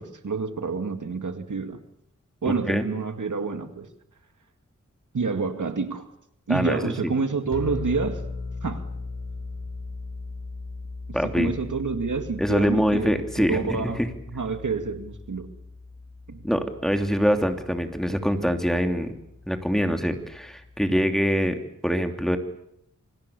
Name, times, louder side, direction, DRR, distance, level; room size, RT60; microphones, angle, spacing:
voice 1, 0.0-1.8 2.4-3.9 5.1-6.1 6.5-8.3 8.6-8.9 11.2-13.1 13.5-14.0 14.3-15.5 16.3-16.4, right 4 dB, 80° right, 8 dB, 2.2 m, -28 dB
voice 2, 6.5-7.1 11.1-11.5 12.4-14.1 16.4-19.1 19.5-21.6 21.8-22.4, equal, ahead, 6 dB, 2.9 m, -24 dB
sound 1, 7.5-20.9, left 3 dB, 45° left, 3.4 m, -39 dB
27.5 x 25.0 x 6.9 m, 0.74 s
wide cardioid pair, 65°, 30 cm